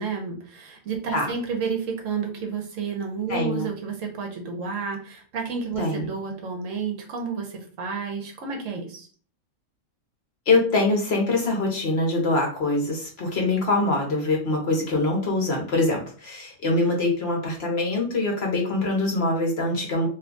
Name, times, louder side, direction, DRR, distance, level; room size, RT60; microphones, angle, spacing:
voice 1, 0.0-9.1, right 5 dB, 80° right, 2 dB, 1.2 m, -31 dB
voice 2, 3.3-3.7 5.8-6.1 10.5-20.1, left 2 dB, 55° left, 0 dB, 1.2 m, -24 dB
3.0 x 2.3 x 3.8 m, 0.42 s
omnidirectional pair, 1.3 m